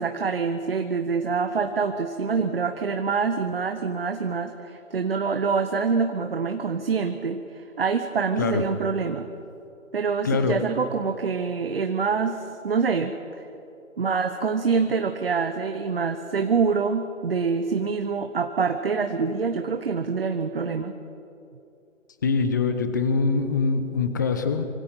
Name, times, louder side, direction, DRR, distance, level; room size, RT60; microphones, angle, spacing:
voice 1, 0.0-9.3 9.9-13.1 14.0-20.9, right 5 dB, 45° right, 7 dB, 1.2 m, -26 dB
voice 2, 10.2-10.6 22.2-24.6, left 4 dB, 15° left, 9 dB, 0.9 m, -23 dB
25.5 x 25.5 x 5.7 m, 2.7 s
figure-of-eight pair, 150°, 40 cm